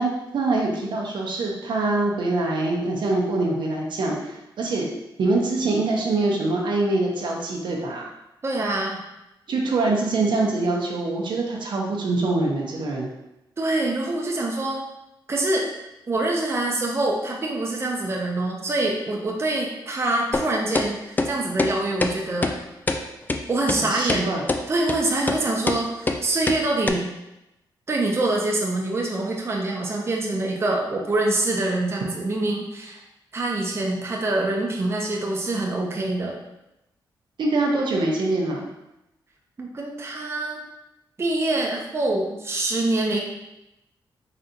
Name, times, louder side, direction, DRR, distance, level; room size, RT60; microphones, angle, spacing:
voice 1, 0.0-4.9 5.2-8.0 9.5-13.1 23.7-24.4 37.4-38.7, right 2 dB, 75° right, -1 dB, 0.8 m, -24 dB
voice 2, 8.4-9.0 13.6-14.8 15.3-15.7 16.1-22.6 23.5-24.3 24.7-27.1 27.9-33.0 33.3-36.4 39.6-40.6 41.2-43.2, right 2 dB, 30° right, -1 dB, 0.6 m, -25 dB
sound 1, 20.3-20.5 20.8-20.9 21.2-21.3 21.6-21.7 22.0-22.1 22.4-22.6 22.9-23.0 23.3-23.4 23.7-23.8 24.1-24.2 24.5-24.6 24.9-25.0 25.3-25.4 25.7-25.8 26.1-26.2 26.5-26.6 26.9-27.0, left 3 dB, 20° left, 0.3 m, -23 dB
3.9 x 3.3 x 2.8 m, 0.91 s
cardioid pair, 90°, 8 cm